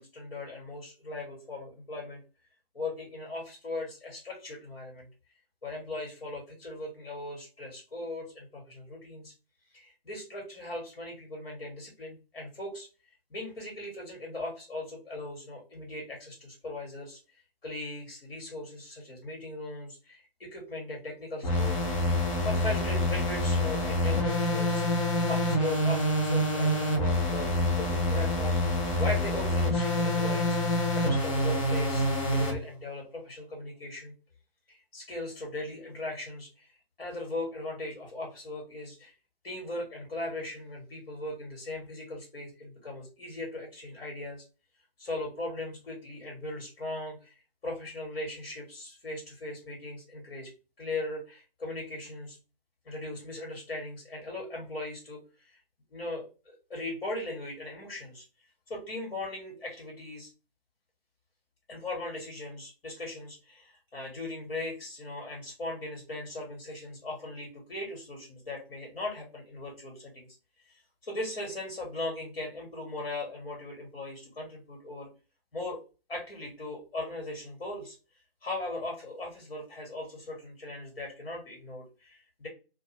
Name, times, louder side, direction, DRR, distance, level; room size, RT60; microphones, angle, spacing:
voice 1, 0.0-2.2 2.7-5.1 5.6-9.3 9.7-12.9 13.3-17.2 17.6-21.8 22.4-28.6 29.0-30.6 30.9-34.1 34.7-39.1 39.4-44.4 45.0-47.3 47.6-50.5 50.8-52.4 52.8-55.2 55.4-55.6 55.9-58.3 58.7-60.3 61.7-70.3 70.7-75.1 75.5-75.8 76.1-78.0 78.4-82.5, left 2 dB, 65° left, 0 dB, 1.2 m, -38 dB
sound 1, 21.4-32.6, left 1 dB, 35° left, 0.6 m, -27 dB
2.3 x 2.2 x 2.9 m, 0.32 s
figure-of-eight pair, 145°, 30 cm